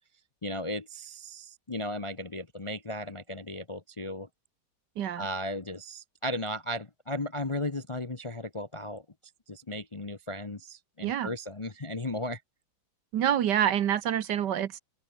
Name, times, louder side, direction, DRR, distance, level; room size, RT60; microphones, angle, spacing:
voice 1, 0.4-4.3 5.2-9.0 9.5-12.4, left 1 dB, 25° left, 0.6 m, -35 dB
voice 2, 5.0-5.3 11.0-11.3 13.1-14.8, right 10 dB, 65° right, 1.5 m, -27 dB
open air
omnidirectional pair, 2.1 m